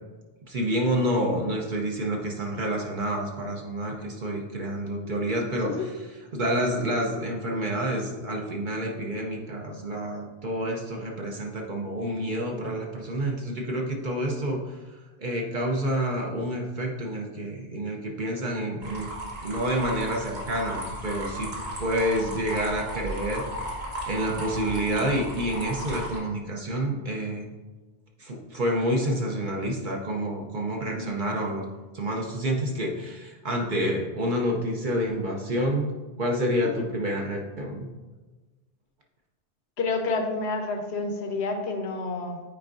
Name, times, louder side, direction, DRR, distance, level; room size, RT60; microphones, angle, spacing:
voice 1, 0.5-5.9 6.4-19.1 19.4-21.5 21.8-23.4 24.1-27.5 28.2-31.7 31.9-35.9 36.2-37.9, equal, 50° right, 0 dB, 0.8 m, -28 dB
sound 1, 18.8-26.2, right 1 dB, 70° right, 1.6 m, -35 dB
voice 2, 39.8-42.4, left 3 dB, 75° left, 5 dB, 1.0 m, -29 dB
8.8 x 4.4 x 2.6 m, 1.2 s
omnidirectional pair, 1.1 m